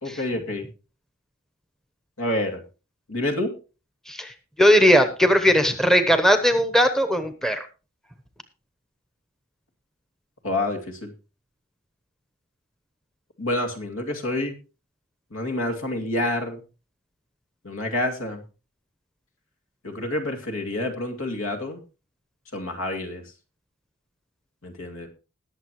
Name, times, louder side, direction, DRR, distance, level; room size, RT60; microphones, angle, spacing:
voice 1, 0.0-0.7 2.2-2.6 3.1-3.5 10.4-11.1 13.4-14.5 15.3-16.6 17.6-18.4 19.8-21.8 22.5-23.2 24.6-25.1, left 1 dB, 70° left, 3 dB, 2.5 m, -28 dB
voice 2, 4.6-7.6, equal, ahead, 8 dB, 1.0 m, -18 dB
20.5 x 7.2 x 3.0 m, 0.32 s
head